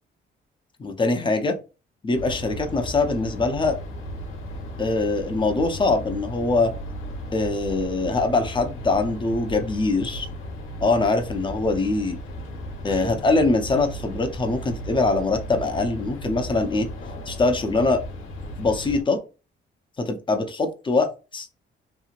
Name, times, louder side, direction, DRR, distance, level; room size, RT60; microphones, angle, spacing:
voice 1, 0.8-1.6 2.0-3.8 4.8-6.7 7.3-10.3 10.8-12.2 12.8-16.9 17.3-18.0 18.6-19.2 20.0-21.5, left 3 dB, 25° left, 6 dB, 0.6 m, -23 dB
sound 1, 2.1-19.0, equal, 85° left, 1.1 m, -35 dB
2.9 x 2.7 x 2.5 m, 0.31 s
cardioid pair, 90°, 20 cm